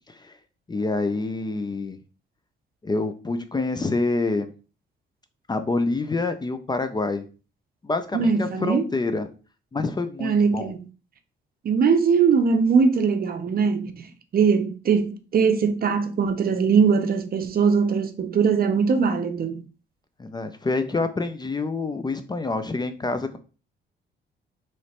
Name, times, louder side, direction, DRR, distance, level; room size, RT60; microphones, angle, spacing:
voice 1, 0.7-2.0 2.8-4.5 5.5-7.2 7.8-9.3 9.7-10.7 20.2-23.4, left 3 dB, 20° left, 0.5 m, -27 dB
voice 2, 8.1-8.9 10.2-10.8 11.6-14.0 14.3-19.6, right 5 dB, 50° right, 0.7 m, -21 dB
3.1 x 3.0 x 4.2 m
cardioid pair, 90°, 20 cm